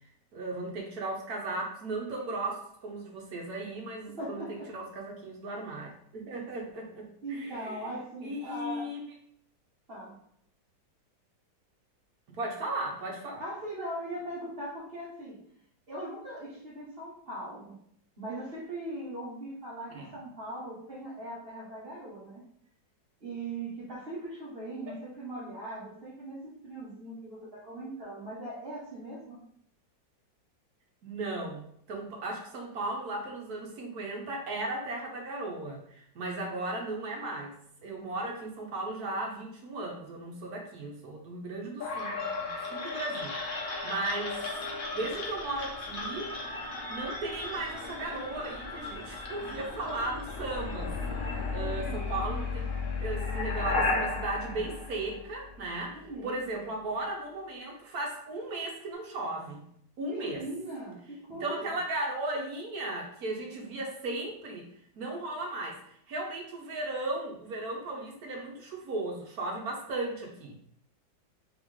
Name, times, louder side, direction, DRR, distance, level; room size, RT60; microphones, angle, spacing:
voice 1, 0.3-7.9 8.2-9.0 12.3-13.4 19.9-20.1 24.9-25.0 31.0-31.6 31.9-44.4 44.9-46.3 46.9-50.9 51.2-52.7 53.0-59.6 60.0-60.4 61.4-64.7 65.0-70.5, right 2 dB, 55° right, -1 dB, 1.3 m, -36 dB
voice 2, 4.2-4.7 7.2-8.9 9.9-10.2 13.4-15.4 15.9-17.8 18.2-22.4 23.2-29.4 51.6-52.4 55.9-56.4 60.1-61.7, right 1 dB, 35° right, -10 dB, 1.4 m, -40 dB
sound 1, 41.8-55.7, left 3 dB, 55° left, 0.5 m, -35 dB
3.9 x 3.5 x 3.6 m, 0.68 s
omnidirectional pair, 2.1 m